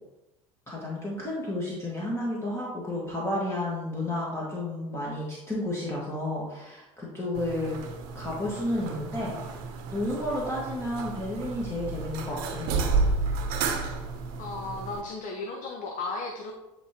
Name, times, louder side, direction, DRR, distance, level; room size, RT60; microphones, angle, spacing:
voice 1, 0.7-7.8 8.1-9.3 9.9-12.8, left 1 dB, 15° left, -5 dB, 1.7 m, -31 dB
sound 1, 7.3-15.0, right 4 dB, 60° right, 0.8 m, -31 dB
voice 2, 14.4-16.5, left 3 dB, 50° left, 2 dB, 0.9 m, -35 dB
9.3 x 3.7 x 2.9 m, 0.97 s
figure-of-eight pair, 65°, 18 cm